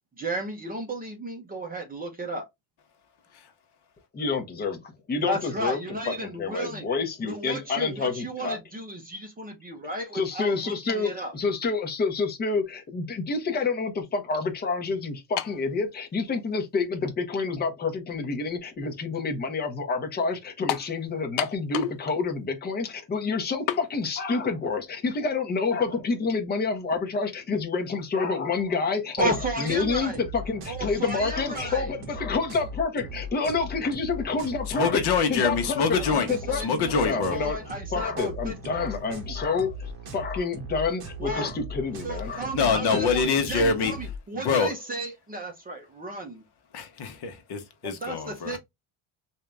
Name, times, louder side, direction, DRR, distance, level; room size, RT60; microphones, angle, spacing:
voice 1, 0.2-2.5 5.2-6.9 7.2-11.3 29.2-30.2 30.7-31.9 35.9-39.0 41.2-41.5 42.0-46.4 47.8-48.6, right 1 dB, 20° right, 0.8 m, -33 dB
voice 2, 4.1-5.8 6.1-8.6 10.1-36.6 36.9-37.6 37.9-43.3, left 4 dB, 20° left, 0.8 m, -28 dB
sound 1, 15.4-15.7 16.5-16.6 20.7-20.9 21.4-22.0 22.3-22.4 23.7-23.9, left 12 dB, 75° left, 0.7 m, -29 dB
sound 2, 29.2-44.2, left 1 dB, 45° right, 1.3 m, -38 dB
voice 3, 34.8-37.4 42.5-43.9 44.4-44.7 46.7-48.6, left 5 dB, 50° left, 1.0 m, -25 dB
3.6 x 2.7 x 3.3 m
cardioid pair, 160°, 49 cm